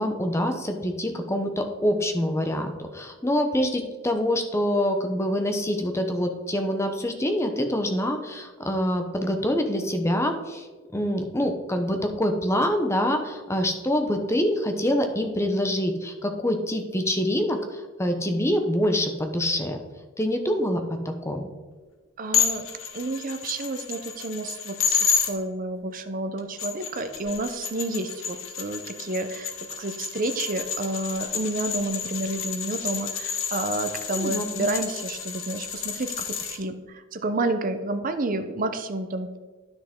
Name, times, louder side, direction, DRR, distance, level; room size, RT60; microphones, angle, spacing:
voice 1, 0.0-10.7 10.9-19.8 20.2-21.4 34.1-34.7, equal, 15° left, 5 dB, 0.8 m, -25 dB
voice 2, 22.2-22.7 22.9-29.5 29.8-36.1 36.4-39.4, right 2 dB, 45° right, 8 dB, 0.6 m, -30 dB
sound 1, 22.3-25.3 26.4-36.6, left 7 dB, 90° left, 1.1 m, -30 dB
10.0 x 6.2 x 3.6 m, 1.3 s
head